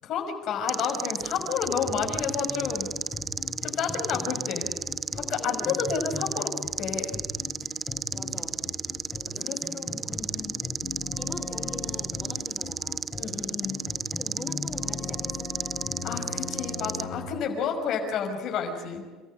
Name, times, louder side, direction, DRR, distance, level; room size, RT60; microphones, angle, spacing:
voice 1, 0.0-2.9 3.6-4.7 5.1-7.2 9.4-10.6 13.2-13.8 16.0-19.0, left 6 dB, 60° left, 2 dB, 5.8 m, -31 dB
sound 1, 0.7-17.0, right 6 dB, 35° right, 0.7 m, -33 dB
sound 2, 1.2-17.3, left 4 dB, 30° left, 5.5 m, -39 dB
voice 2, 5.4-5.9 8.1-8.6 9.3-9.7 10.0-10.4 11.1-13.1 14.2-15.5, left 1 dB, 5° left, 1 dB, 5.0 m, -43 dB
30.0 x 14.0 x 8.9 m, 1.3 s
supercardioid pair, 90°, 0 cm